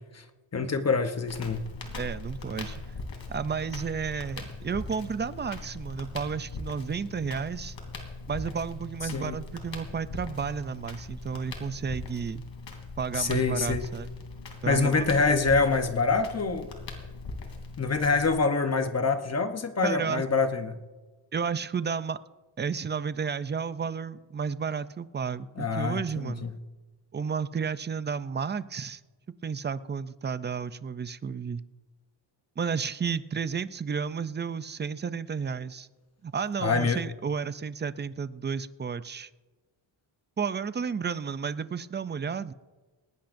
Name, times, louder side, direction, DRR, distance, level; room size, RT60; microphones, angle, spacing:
voice 1, 0.5-1.7 9.1-9.4 13.2-13.8 14.6-16.7 17.8-20.8 25.6-26.5 36.6-37.0, left 4 dB, 35° left, 7 dB, 0.9 m, -26 dB
Crackle, 1.3-18.4, left 3 dB, 65° left, 3.0 m, -40 dB
voice 2, 1.9-2.8 3.3-7.8 8.3-12.4 13.0-14.1 14.6-15.0 19.8-20.2 21.3-22.2 22.6-26.4 27.1-29.0 29.4-31.6 32.6-35.9 36.2-39.3 40.4-42.5, right 6 dB, 25° right, 14 dB, 0.3 m, -32 dB
19.0 x 18.5 x 2.6 m, 1.3 s
wide cardioid pair, 160°, 48 cm